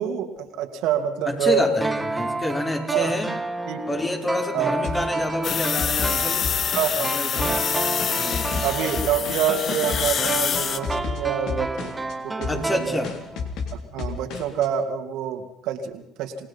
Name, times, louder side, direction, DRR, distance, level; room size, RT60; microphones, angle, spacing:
voice 1, 0.0-1.7 2.9-3.2 3.7-3.8 4.5-4.7 6.7-7.6 8.6-11.9 12.2-13.0 13.9-16.5, right 8 dB, 65° right, 5 dB, 2.4 m, -26 dB
voice 2, 1.3-3.3 3.9-6.5 7.0-7.5 8.2-8.4 12.5-13.1, left 1 dB, 20° left, 2 dB, 5.0 m, -28 dB
sound 1, 1.8-13.4 13.7-13.8, right 3 dB, 20° right, 1.8 m, -31 dB
sound 2, 4.8-7.1 7.4-9.6 9.9-10.2 10.5-12.1 12.4-12.8 13.0-14.7, left 5 dB, 65° left, 3.4 m, -32 dB
sound 3, 5.4-10.8, left 8 dB, 50° left, 1.3 m, -26 dB
28.0 x 18.5 x 5.6 m, 0.79 s
hypercardioid pair, 65°, 0 cm